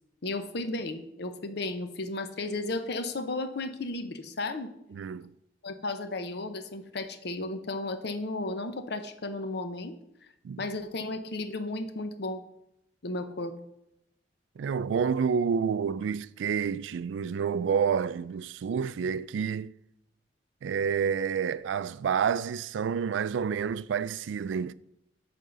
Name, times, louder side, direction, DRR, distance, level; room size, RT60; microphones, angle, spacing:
voice 1, 0.2-4.7 5.6-10.0 10.6-12.4 13.0-13.5, left 2 dB, 60° left, 0.8 m, -34 dB
voice 2, 4.9-5.3 10.4-10.6 14.6-19.7 20.6-24.7, right 6 dB, 85° right, 0.3 m, -29 dB
8.6 x 3.7 x 6.7 m
head